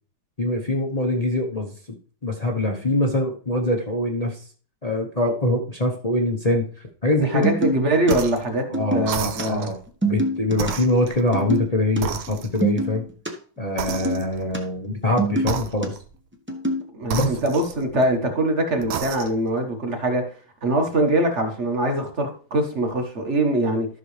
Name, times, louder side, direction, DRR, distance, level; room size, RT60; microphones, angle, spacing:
voice 1, 0.4-1.7 2.2-4.4 4.8-6.6 7.0-7.5 8.7-9.8 10.1-13.0 13.6-15.9 17.1-17.4, left 1 dB, 30° left, 0.7 m, -23 dB
voice 2, 7.2-8.6 8.9-9.7 16.9-20.2 20.6-23.9, right 1 dB, 35° right, 1.6 m, -23 dB
sound 1, 7.4-8.1 8.6-9.4 9.9-10.7 11.3-11.7 12.0-12.1 12.3-13.3 13.9-14.6 15.0-15.9 16.5-16.9, right 1 dB, 10° right, 0.5 m, -25 dB
sound 2, 8.0-8.5 9.0-9.8 10.5-11.7 12.0-12.8 13.8-14.5 15.4-16.1 17.0-18.2 18.8-19.5, right 8 dB, 80° right, 1.6 m, -32 dB
13.5 x 6.1 x 3.3 m
omnidirectional pair, 2.3 m